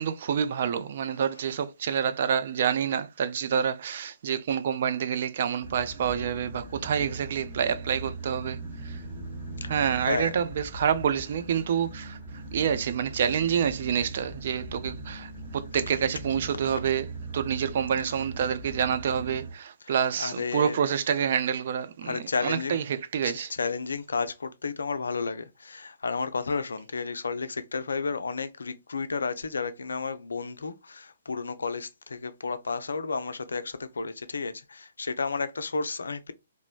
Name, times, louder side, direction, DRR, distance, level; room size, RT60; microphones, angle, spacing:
voice 1, 0.0-8.6 8.8-9.0 9.7-12.2 12.5-17.1 17.3-22.8 23.1-23.5, right 8 dB, 45° right, 0.3 m, -27 dB
sound 1, 5.6-19.5, right 2 dB, 15° right, 0.8 m, -40 dB
voice 2, 9.6-10.3 19.8-20.8 22.0-22.8 23.2-36.3, left 4 dB, 65° left, 0.4 m, -32 dB
2.9 x 2.0 x 2.3 m
figure-of-eight pair, 125°, 0 cm